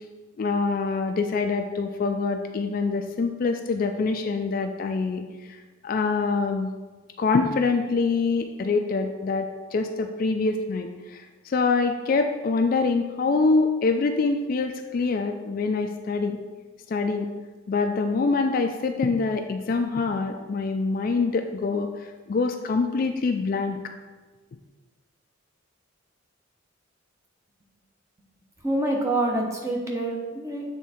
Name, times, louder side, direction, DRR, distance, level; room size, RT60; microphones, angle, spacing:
voice 1, 0.4-5.2 5.8-6.7 7.2-16.4 16.9-17.3 17.7-21.9 22.3-23.8, left 4 dB, 45° left, 6 dB, 0.3 m, -25 dB
voice 2, 28.6-30.6, right 2 dB, 15° right, -1 dB, 0.8 m, -26 dB
7.4 x 3.5 x 4.2 m, 1.3 s
head